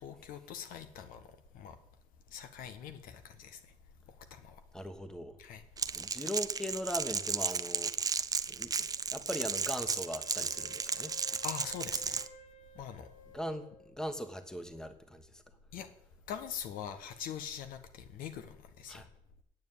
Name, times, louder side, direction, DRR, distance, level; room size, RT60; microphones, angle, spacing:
voice 1, 0.0-1.3 1.5-1.7 2.3-3.6 4.3-4.6 5.4-5.6 11.4-12.2 12.7-13.1 15.7-15.9 16.3-19.1, left 8 dB, 85° left, 9 dB, 1.4 m, -43 dB
voice 2, 4.7-5.4 5.9-11.4 13.3-15.4 18.9-19.1, equal, 5° left, 8 dB, 1.2 m, -40 dB
Crackle, 5.8-12.3, right 5 dB, 25° right, 0.5 m, -34 dB
Wind instrument woodwind instrument, 9.8-14.0, left 4 dB, 55° left, 1.8 m, -55 dB
9.4 x 7.4 x 9.1 m, 0.73 s
cardioid pair, 120°, 14 cm